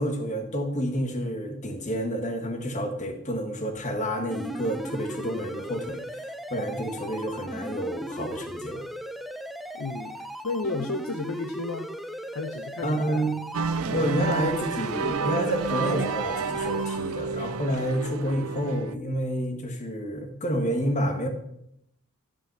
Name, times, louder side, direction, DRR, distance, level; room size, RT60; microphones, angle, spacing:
voice 1, 0.0-8.8 12.8-13.3 13.9-21.3, equal, 35° left, 5 dB, 1.4 m, -29 dB
sound 1, 4.3-17.0, equal, ahead, 0.4 m, -37 dB
voice 2, 9.7-10.2 10.4-11.9 12.3-13.3, left 3 dB, 65° left, 6 dB, 0.7 m, -32 dB
sound 2, 13.5-18.9, right 5 dB, 75° right, 0.5 m, -30 dB
13.0 x 5.4 x 5.8 m, 0.77 s
head